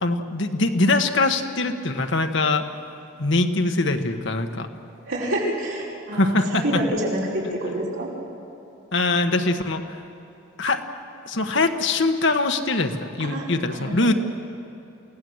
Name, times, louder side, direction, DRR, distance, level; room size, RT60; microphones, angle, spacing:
voice 1, 0.0-2.7 3.2-4.7 6.1-6.8 8.9-10.0 10.6-10.8 11.3-14.1, left 2 dB, 60° left, 6 dB, 1.4 m, -22 dB
voice 2, 5.0-8.1 13.2-14.1, right 1 dB, 75° right, -4 dB, 5.5 m, -27 dB
28.5 x 17.5 x 8.0 m, 2.9 s
head